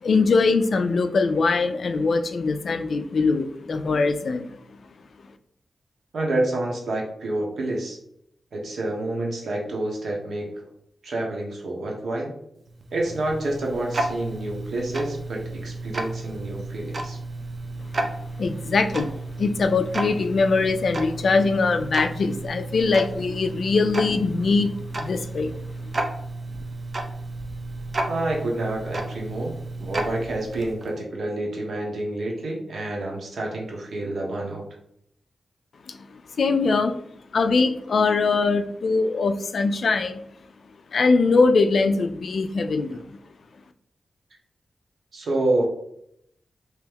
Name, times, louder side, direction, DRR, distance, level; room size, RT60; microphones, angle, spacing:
voice 1, 0.0-4.5 18.4-24.7 25.0-25.5 35.9-36.0 36.4-37.0 37.3-40.2 40.9-43.0, left 4 dB, 65° left, 8 dB, 0.4 m, -22 dB
voice 2, 6.1-8.0 8.5-10.5 11.0-12.3 12.9-17.2 28.1-29.5 29.8-34.6 45.1-45.6, right 2 dB, 75° right, -1 dB, 1.1 m, -28 dB
Tick-tock, 12.7-31.0, right 2 dB, 40° right, 0.5 m, -33 dB
3.5 x 3.0 x 3.4 m, 0.75 s
wide cardioid pair, 105°, 0 cm